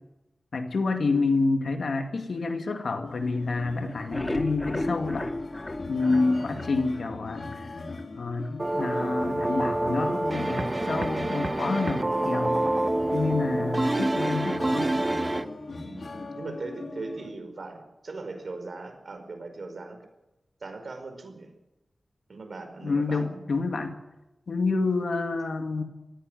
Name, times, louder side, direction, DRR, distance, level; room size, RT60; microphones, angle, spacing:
voice 1, 0.5-5.3 5.9-7.6 8.2-12.6 13.1-15.0 22.8-24.0 24.5-25.8, left 3 dB, 80° left, 5 dB, 2.3 m, -28 dB
sound 1, 3.0-17.3, left 3 dB, 65° left, 3.2 m, -40 dB
sound 2, 3.9-7.1 7.5-7.6 8.0-8.1 8.4-8.5, left 1 dB, 25° left, 1.0 m, -33 dB
voice 2, 6.0-6.6 15.8-20.0 20.6-21.5 22.3-23.4 24.7-24.9, right 3 dB, 65° right, 6 dB, 5.0 m, -40 dB
sound 3, 8.6-15.4, right 1 dB, 30° right, 1.1 m, -27 dB
18.5 x 15.5 x 9.3 m, 0.97 s
wide cardioid pair, 70°, 0 cm